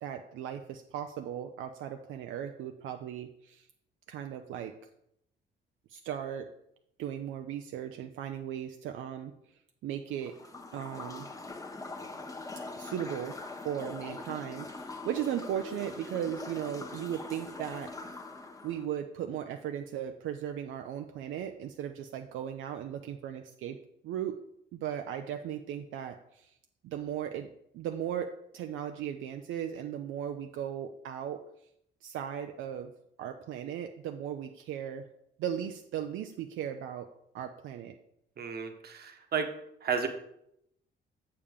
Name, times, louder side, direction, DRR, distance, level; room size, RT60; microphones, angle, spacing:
voice 1, 0.0-3.7 4.1-4.8 5.9-6.5 7.0-9.3 9.8-10.4 10.7-11.3 12.7-18.0 18.6-24.4 24.7-26.5 26.8-31.4 32.0-32.9 33.2-35.1 35.4-38.0, right 9 dB, 80° right, 6 dB, 0.5 m, -37 dB
sound 1, 10.2-18.9, left 3 dB, 15° left, 0.8 m, -43 dB
voice 2, 38.4-39.6 39.8-40.1, right 6 dB, 55° right, 6 dB, 1.1 m, -32 dB
7.2 x 6.7 x 3.6 m, 0.77 s
cardioid pair, 90°, 20 cm